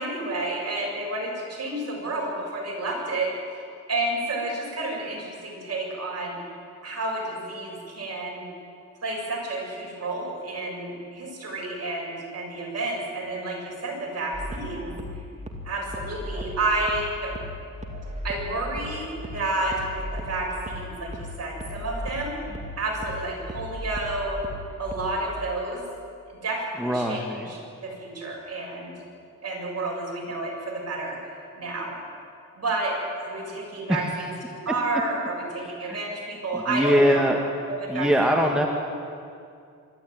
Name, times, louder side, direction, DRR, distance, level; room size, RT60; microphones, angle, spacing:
voice 1, 0.0-3.3 3.9-6.4 6.8-8.4 9.0-15.0 15.6-17.3 18.2-22.5 22.8-24.4 24.8-25.8 26.3-27.2 27.8-28.9 29.4-32.0 32.6-37.3 37.7-38.1, right 2 dB, 50° right, -2 dB, 7.6 m, -30 dB
sound 1, 14.3-25.3, equal, 20° right, 2.7 m, -37 dB
voice 2, 26.8-27.5 33.9-34.1 35.6-36.0 36.5-37.4 37.9-38.7, equal, ahead, 1 dB, 1.8 m, -22 dB
25.0 x 13.0 x 9.4 m, 2.4 s
cardioid pair, 95°, 33 cm